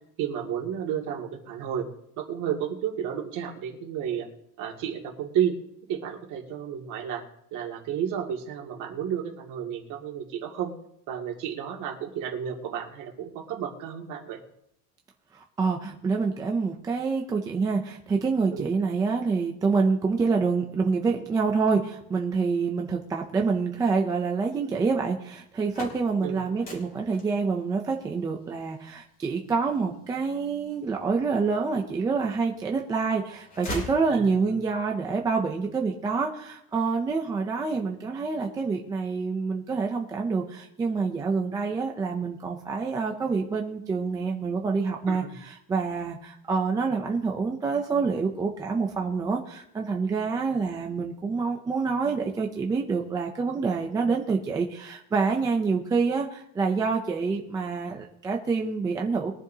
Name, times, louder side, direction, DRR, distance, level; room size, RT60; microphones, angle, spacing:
voice 1, 0.2-1.9 2.2-4.3 4.6-5.5 5.9-7.2 7.5-10.7 11.1-14.4 18.5-18.7 26.2-26.4 34.1-34.6 45.1-45.3, right 9 dB, 40° right, 1 dB, 2.2 m, -32 dB
voice 2, 15.3-59.3, right 4 dB, 10° right, 1 dB, 0.4 m, -27 dB
sound 1, 25.5-31.4 32.0-32.8 33.1-34.7, equal, 20° left, 2.7 m, -41 dB
21.5 x 10.5 x 2.8 m, 0.77 s
cardioid pair, 175°, 45 cm